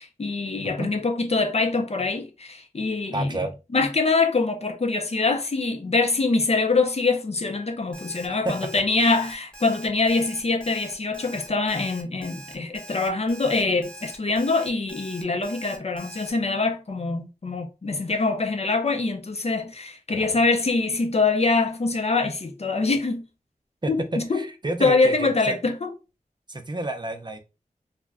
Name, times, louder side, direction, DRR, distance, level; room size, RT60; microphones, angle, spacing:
voice 1, 0.0-3.3 3.7-23.2 23.9-24.4 24.8-25.9, left 3 dB, 45° left, 0.5 m, -24 dB
voice 2, 3.1-3.5 8.4-8.5 20.1-20.3 23.8-23.9 24.3-25.6 26.5-27.4, right 2 dB, 30° right, 0.5 m, -30 dB
Alarm, 7.9-16.3, right 2 dB, 5° left, 1.1 m, -43 dB
2.2 x 2.1 x 3.5 m
wide cardioid pair, 55°, 14 cm